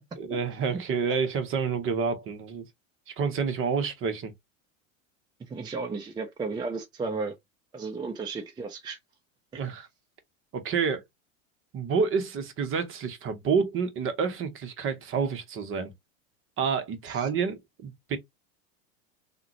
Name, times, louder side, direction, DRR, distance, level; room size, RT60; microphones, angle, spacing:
voice 1, 0.2-2.6 3.1-4.3 9.5-9.9 10.5-11.0 11.7-15.9 16.6-18.2, right 5 dB, 30° right, 0.8 m, -28 dB
voice 2, 5.5-7.4 7.7-9.0 9.5-9.6 17.0-17.3, right 4 dB, 10° right, 0.4 m, -34 dB
3.5 x 2.2 x 2.8 m
hypercardioid pair, 105°, 40 cm